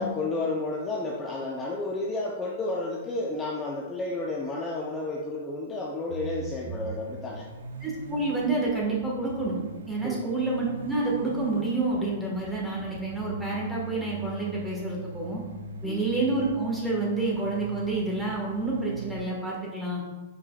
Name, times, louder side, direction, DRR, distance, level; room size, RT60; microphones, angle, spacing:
voice 1, 0.0-7.5 10.0-10.4 15.8-16.1, left 2 dB, 20° left, -2 dB, 0.5 m, -31 dB
sound 1, 6.1-19.3, right 3 dB, 75° right, 0.4 m, -41 dB
voice 2, 7.8-9.6 9.9-15.4 15.8-20.0, right 2 dB, 5° right, -4 dB, 1.4 m, -28 dB
4.9 x 4.5 x 2.3 m, 1.2 s
hypercardioid pair, 120°, 0 cm